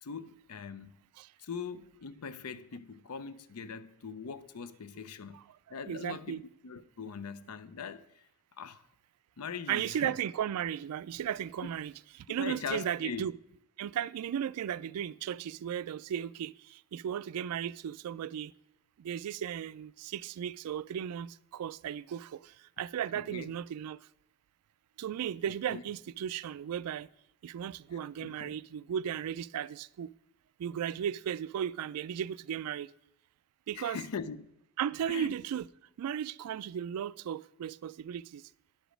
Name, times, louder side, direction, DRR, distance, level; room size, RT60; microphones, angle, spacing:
voice 1, 0.0-1.0 1.4-5.4 5.7-8.3 8.6-8.9 9.4-10.2 11.6-11.7 12.3-13.3 23.1-23.5 25.7-25.8 27.9-28.6 33.7-34.5 35.1-35.3, left 5 dB, 75° left, 0.5 m, -41 dB
voice 2, 5.9-6.4 9.7-13.3 13.8-18.5 19.0-24.1 25.0-27.1 27.4-30.1 30.6-32.9 33.7-34.0 34.8-35.7 36.0-38.4, right 9 dB, 75° right, 0.3 m, -35 dB
10.0 x 5.0 x 6.2 m
head